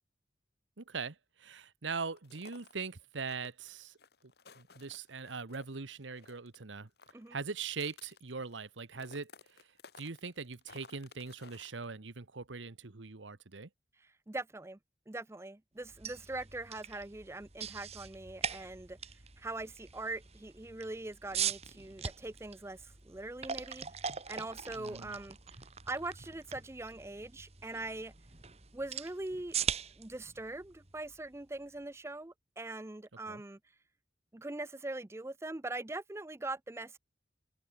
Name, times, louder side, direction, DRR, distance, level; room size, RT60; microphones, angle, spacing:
voice 1, 0.8-3.9 4.6-6.9 7.3-9.3 10.0-13.7 24.7-25.1 33.3-33.4, right 4 dB, 85° right, 1.2 m, -41 dB
sound 1, 2.2-2.8 3.2-5.7 6.0-6.6 6.9-8.7 9.0-11.8, left 4 dB, 60° left, 1.7 m, -57 dB
voice 2, 14.3-14.8 15.1-19.0 19.4-25.4 25.9-28.1 28.7-29.6 30.0-33.6 34.3-37.0, right 2 dB, 15° right, 0.5 m, -42 dB
sound 2, 15.8-31.8, right 7 dB, 35° right, 2.0 m, -42 dB
open air
head